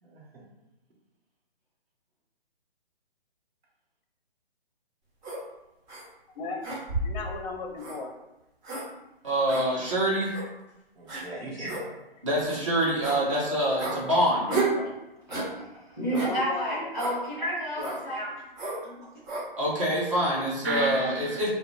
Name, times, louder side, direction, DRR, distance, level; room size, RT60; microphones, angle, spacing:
voice 1, 0.0-0.4 11.0-11.9 20.6-21.5, right 2 dB, 75° right, -2 dB, 0.9 m, -34 dB
sound 1, 5.2-5.4 5.9-6.0 6.6-7.2 7.8-8.0 8.6-8.9 9.5-9.6 10.3-10.5 11.1-11.2 11.7-11.8 12.4-12.6 13.0-13.2 13.8-14.0 14.5-14.8 15.3-15.5 16.1-16.3 17.0-17.2 17.8-18.0 18.6-18.8 19.3-19.5, right 3 dB, 50° right, 1.3 m, -31 dB
voice 2, 6.3-6.7 7.0-8.1 14.5-14.9 16.1-16.9 17.8-18.0, left 3 dB, 45° left, 2 dB, 0.5 m, -36 dB
voice 3, 9.2-10.4 11.6-11.7 12.2-14.5 19.6-21.5, right 1 dB, 30° right, -6 dB, 0.6 m, -26 dB
voice 4, 15.3-18.5 18.8-18.9, right 1 dB, 10° right, -10 dB, 0.9 m, -31 dB
2.4 x 2.1 x 2.8 m, 0.95 s
figure-of-eight pair, 145°, 31 cm